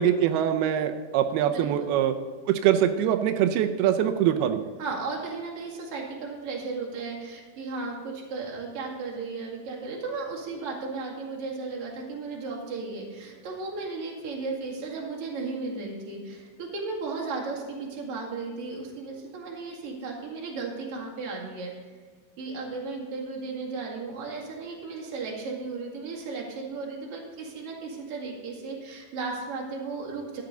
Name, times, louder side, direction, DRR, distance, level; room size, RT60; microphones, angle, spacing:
voice 1, 0.0-2.2 2.5-4.6, right 10 dB, 85° right, 8 dB, 2.6 m, -23 dB
voice 2, 1.5-1.9 4.8-21.9 22.4-30.4, right 4 dB, 45° right, -2 dB, 2.7 m, -35 dB
13.0 x 9.6 x 3.9 m, 1.5 s
omnidirectional pair, 4.4 m